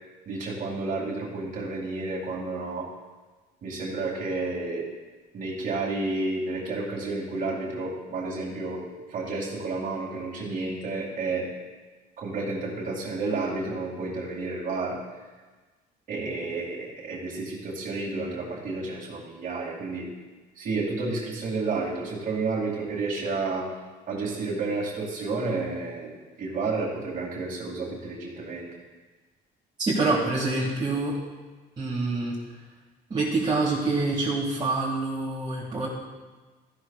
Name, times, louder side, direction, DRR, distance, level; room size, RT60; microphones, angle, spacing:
voice 1, 0.3-2.9 3.6-4.9 5.3-8.8 9.1-11.5 12.2-15.0 16.1-20.1 20.6-23.7 24.1-28.7, right 3 dB, 55° right, -6 dB, 2.5 m, -31 dB
voice 2, 29.8-31.1 31.8-32.4 33.1-35.9, right 3 dB, 25° right, -7 dB, 2.2 m, -26 dB
14.0 x 11.5 x 2.4 m, 1.3 s
cardioid pair, 110°, 17 cm